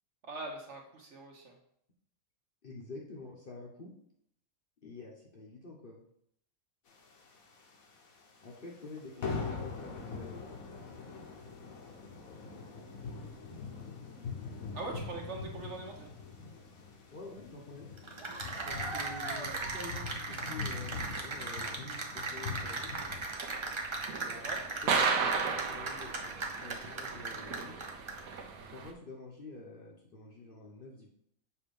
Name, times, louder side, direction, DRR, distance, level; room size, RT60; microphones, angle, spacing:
voice 1, 0.2-1.5 9.5-9.6 14.7-16.1 24.4-24.6, right 2 dB, 55° right, 0 dB, 1.4 m, -42 dB
voice 2, 2.6-3.9 4.8-6.0 8.4-10.6 17.1-17.9 18.6-22.9 24.2-24.5 24.8-27.8 28.7-31.1, left 3 dB, 45° left, -1 dB, 0.9 m, -48 dB
sound 1, 7.0-8.0 8.3-8.5 8.8-9.0 9.2-23.2, left 4 dB, 75° left, 1.4 m, -43 dB
Cheering / Applause, 18.0-28.3, right 3 dB, 30° right, 0.5 m, -38 dB
sound 2, 22.8-28.9, right 5 dB, 80° right, 1.2 m, -35 dB
7.1 x 2.7 x 5.2 m, 0.71 s
omnidirectional pair, 1.5 m